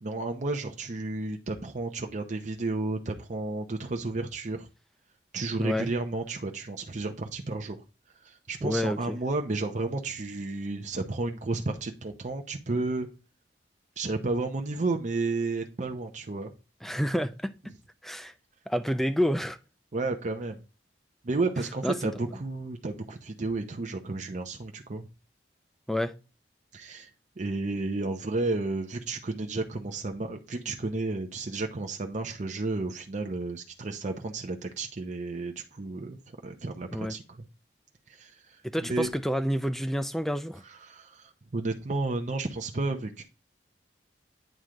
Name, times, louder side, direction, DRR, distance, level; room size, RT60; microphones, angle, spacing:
voice 1, 0.0-4.7 5.3-7.8 8.2-13.1 14.0-16.5 19.9-20.6 21.2-25.1 26.7-27.1 27.4-36.2 36.4-37.2 38.1-38.6 38.9-39.1 40.9-43.2, right 3 dB, 45° right, 0.7 m, -32 dB
voice 2, 5.6-5.9 8.6-9.2 16.8-17.7 18.0-18.3 18.7-19.6 21.8-22.2 25.9-26.1 36.9-37.1 38.6-40.6, equal, ahead, 0.5 m, -29 dB
9.0 x 3.2 x 3.7 m
head